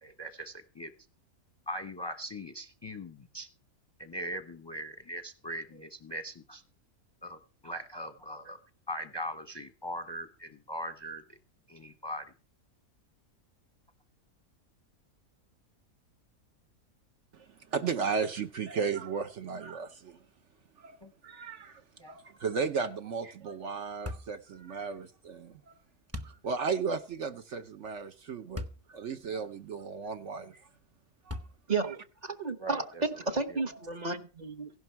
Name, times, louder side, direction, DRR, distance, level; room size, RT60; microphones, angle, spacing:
voice 1, 0.0-0.9 1.7-3.5 4.0-6.6 7.2-8.6 8.9-11.4 11.7-12.3 21.0-21.1 22.0-22.2 29.3-29.5 32.6-33.6, equal, 20° left, 0.8 m, -40 dB
voice 2, 17.7-20.2 20.8-21.0 21.2-21.8 22.1-25.7 26.2-30.6 31.3-31.4 31.9-32.0, right 5 dB, 60° right, 1.1 m, -35 dB
sound 1, 24.0-24.4 26.1-26.4 28.5-28.8 29.5-29.6 31.3-31.8, left 2 dB, 15° right, 0.7 m, -38 dB
voice 3, 32.4-34.7, right 3 dB, 30° right, 1.1 m, -32 dB
16.0 x 11.5 x 4.6 m
omnidirectional pair, 1.5 m